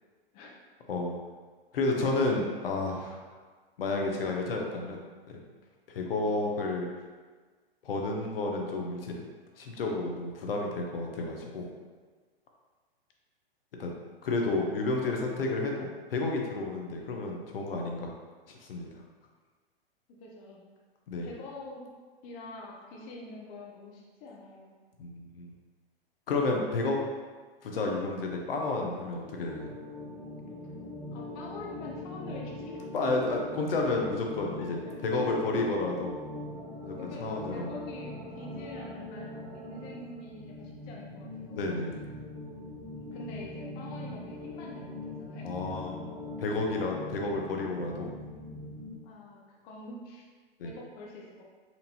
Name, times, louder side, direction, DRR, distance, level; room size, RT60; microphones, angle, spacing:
voice 1, 1.7-3.2 3.8-5.0 5.3-5.4 5.9-6.9 7.8-9.2 9.6-11.7 13.8-13.9 14.2-18.1 18.5-18.9 21.1-21.3 25.0-25.5 26.3-27.0 27.6-29.7 32.3-32.4 32.9-36.1 36.8-37.7 41.5-41.9 45.4-46.0 46.4-48.1 50.6-50.7, left 2 dB, 65° left, 0 dB, 0.7 m, -31 dB
voice 2, 20.2-20.6 21.2-21.8 22.2-24.7 31.1-32.9 34.0-34.1 34.4-34.9 37.0-41.7 43.0-45.5 49.0-50.3 50.6-51.4, left 2 dB, 30° left, -2 dB, 0.6 m, -45 dB
sound 1, 29.2-49.0, left 1 dB, 40° right, 0.8 m, -42 dB
4.3 x 2.6 x 2.7 m, 1.4 s
figure-of-eight pair, 110°, 31 cm